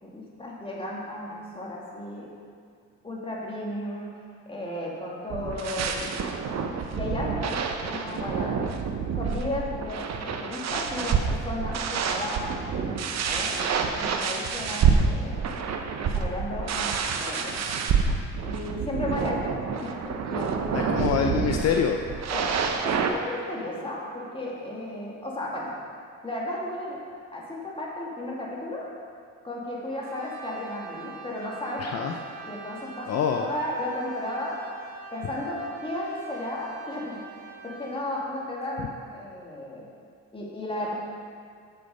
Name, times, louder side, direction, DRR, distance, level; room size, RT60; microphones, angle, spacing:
voice 1, 0.0-2.3 3.0-4.2 4.5-6.3 6.9-8.7 9.1-16.9 17.2-17.6 18.4-21.2 22.3-25.8 26.2-27.0 27.3-28.9 29.4-34.6 35.1-37.3 37.6-39.8 40.3-40.9, left 1 dB, 20° left, -4 dB, 2.2 m, -34 dB
sound 1, 5.3-23.1, right 6 dB, 60° right, 0.8 m, -28 dB
voice 2, 20.7-22.0 31.8-32.2 33.1-33.5, left 7 dB, 60° left, 3 dB, 0.6 m, -25 dB
Brass instrument, 29.9-38.1, right 4 dB, 80° right, 1.2 m, -44 dB
7.0 x 6.8 x 5.4 m, 2.2 s
cardioid pair, 90°, 30 cm